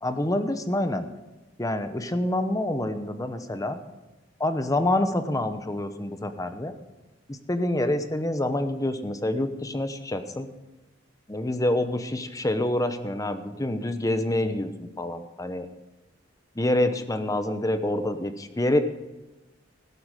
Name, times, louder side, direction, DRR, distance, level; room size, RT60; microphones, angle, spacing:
voice 1, 0.0-1.1 1.6-3.8 4.4-6.7 7.3-10.5 11.3-14.7 15.0-15.7 16.6-18.8, left 1 dB, 20° left, 9 dB, 0.9 m, -27 dB
17.0 x 7.9 x 6.4 m, 1.1 s
head